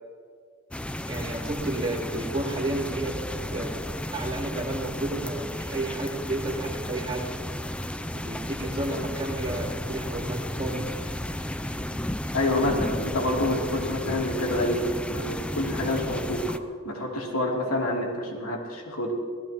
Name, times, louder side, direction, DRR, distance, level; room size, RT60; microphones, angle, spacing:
sound 1, 0.7-16.6, left 1 dB, 5° left, 0.4 m, -33 dB
voice 1, 1.0-3.1 3.5-3.7 4.1-7.3 8.1-11.1, right 2 dB, 25° right, -6 dB, 3.3 m, -32 dB
voice 2, 12.3-16.5 16.8-19.1, left 1 dB, 75° left, -1 dB, 2.9 m, -27 dB
25.5 x 17.0 x 3.0 m, 2.1 s
head